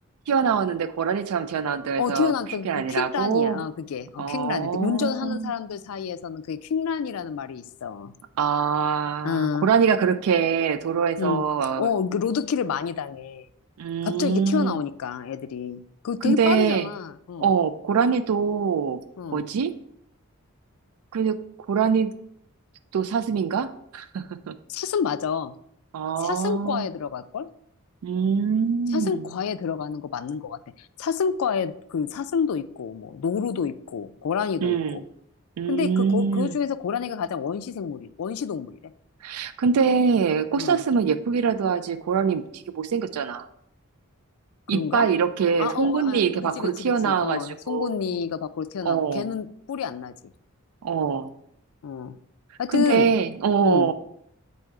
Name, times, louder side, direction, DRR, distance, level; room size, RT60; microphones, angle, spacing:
voice 1, 0.3-2.3 2.6-3.6 4.2-5.5 8.4-11.9 13.8-14.7 16.2-16.9 17.4-19.0 19.3-19.7 21.1-21.4 21.7-22.1 22.9-24.6 25.9-26.9 28.0-29.2 34.6-35.0 35.6-36.5 39.2-43.5 44.7-47.9 48.8-49.3 50.8-51.3 52.7-53.9, right 6 dB, 80° right, 10 dB, 0.4 m, -24 dB
voice 2, 2.0-8.1 9.2-9.7 11.2-13.5 14.0-17.5 19.2-19.4 24.7-25.5 26.2-27.5 28.9-35.0 35.7-38.8 40.6-40.8 44.7-45.1 45.6-46.2 46.6-50.1 51.8-52.1 52.6-53.1 53.6-53.9, left 6 dB, 70° left, 12 dB, 0.3 m, -28 dB
7.6 x 2.8 x 4.7 m, 0.72 s
head